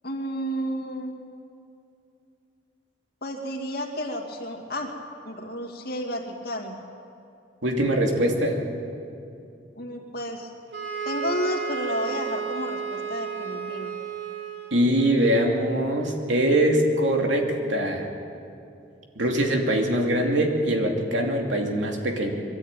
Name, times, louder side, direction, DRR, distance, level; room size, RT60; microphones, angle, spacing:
voice 1, 0.0-1.1 3.2-4.9 5.3-6.8 9.8-10.5 11.0-13.9, equal, 55° left, 2 dB, 2.5 m, -31 dB
voice 2, 7.6-8.6 14.7-18.1 19.2-22.3, right 1 dB, 80° right, 2 dB, 2.7 m, -23 dB
sound 1, 10.7-15.1, right 6 dB, 65° right, 2.7 m, -32 dB
23.0 x 13.0 x 9.1 m, 2.6 s
head